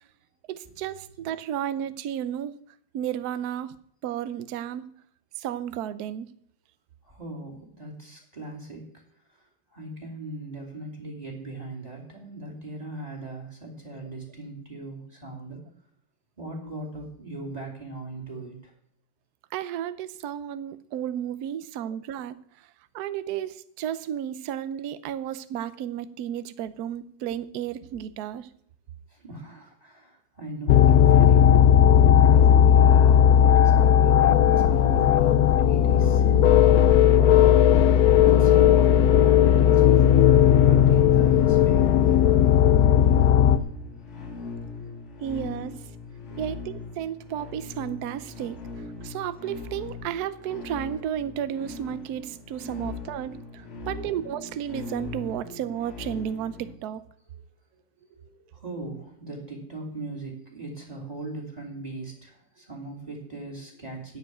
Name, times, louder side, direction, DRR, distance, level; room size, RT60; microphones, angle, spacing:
voice 1, 0.5-2.5 2.9-3.8 4.0-4.9 5.4-6.3 19.5-22.4 22.9-28.5 45.2-45.8 46.3-48.6 49.0-57.0, right 10 dB, 65° right, 13 dB, 1.0 m, -33 dB
voice 2, 7.1-8.9 9.7-15.6 16.4-18.5 29.2-31.5 32.1-37.3 38.2-40.2 40.5-41.8 46.3-46.4 58.1-58.3 58.6-64.2, right 3 dB, 20° right, 0 dB, 2.9 m, -39 dB
sound 1, 30.7-43.6, left 9 dB, 75° left, 0.8 m, -16 dB
sound 2, 41.9-56.7, left 4 dB, 40° left, 1.6 m, -40 dB
14.0 x 5.1 x 9.3 m, 0.67 s
omnidirectional pair, 2.3 m